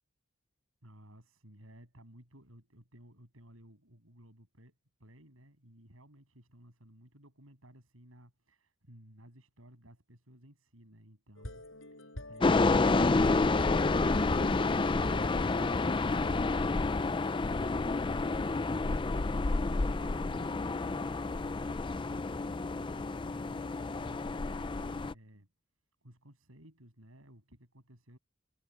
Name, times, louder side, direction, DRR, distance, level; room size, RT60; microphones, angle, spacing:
voice 1, 0.8-18.9 19.2-25.5 26.0-28.2, right 1 dB, 80° right, 7.4 m, -57 dB
sound 1, 11.4-16.4, left 1 dB, 65° left, 7.9 m, -45 dB
sound 2, 12.4-25.1, left 3 dB, 25° left, 0.4 m, -29 dB
head